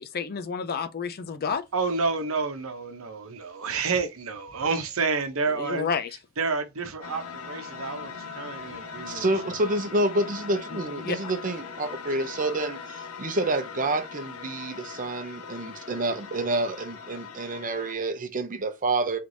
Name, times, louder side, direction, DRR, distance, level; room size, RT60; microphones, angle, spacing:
voice 1, 0.0-1.6 5.5-6.1 10.7-11.3, left 6 dB, 45° left, 0.5 m, -30 dB
voice 2, 1.7-5.9 6.4-9.3, right 4 dB, 70° right, 0.9 m, -29 dB
sound 1, 7.0-17.9, left 6 dB, 80° left, 0.7 m, -40 dB
voice 3, 9.1-19.2, right 2 dB, 40° right, 0.7 m, -28 dB
3.3 x 3.3 x 3.9 m
head